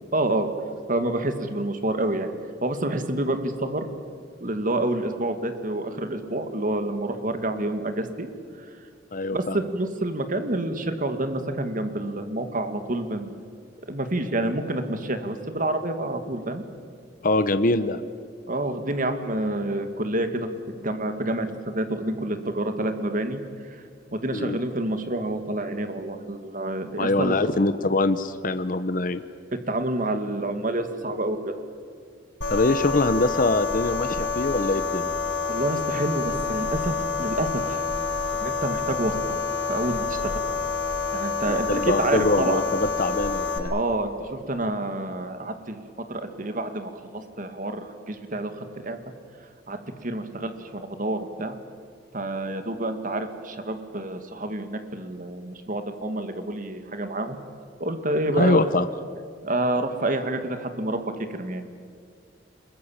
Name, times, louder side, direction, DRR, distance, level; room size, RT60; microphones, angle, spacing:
voice 1, 0.1-0.5 0.9-2.3 2.6-3.9 4.4-8.3 8.6-8.7 9.3-13.3 13.9-16.6 18.5-20.5 20.8-21.5 21.7-23.4 23.7-23.8 24.1-27.4 29.7-31.5 35.5-37.8 38.4-39.4 39.7-40.4 41.1-42.6 43.7-45.8 46.1-49.0 49.7-51.6 52.1-57.4 57.8-58.6 59.4-61.0 61.3-61.7, right 1 dB, 45° right, 8 dB, 2.2 m, -28 dB
voice 2, 9.1-9.6 17.2-18.0 24.3-24.6 27.0-29.2 32.5-35.1 41.5-43.7 58.3-58.9, left 2 dB, 45° left, 11 dB, 0.9 m, -23 dB
sound 1, 32.4-43.6, left 4 dB, 90° left, 6.1 m, -28 dB
26.0 x 22.0 x 8.8 m, 2.2 s
head